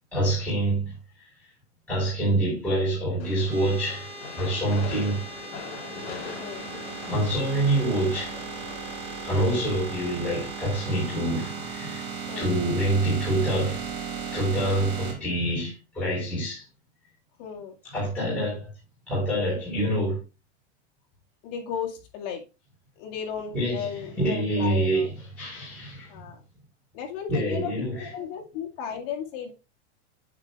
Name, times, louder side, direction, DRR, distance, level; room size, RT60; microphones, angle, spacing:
voice 1, 0.1-0.9 1.9-4.1 4.4-5.2 7.1-8.3 9.2-12.1 12.4-13.9 14.3-16.6 17.9-18.7 19.1-20.2 23.5-26.2 27.3-28.1, right 1 dB, 5° left, 4.6 m, -26 dB
Train, 3.2-9.7, left 5 dB, 70° left, 4.2 m, -41 dB
sound 1, 3.5-15.1, right 5 dB, 55° right, 4.8 m, -36 dB
voice 2, 17.4-17.7 21.4-22.4 23.0-25.1 26.1-26.4 26.9-29.5, left 7 dB, 40° left, 2.1 m, -35 dB
8.9 x 5.4 x 3.4 m
supercardioid pair, 180°, 33 cm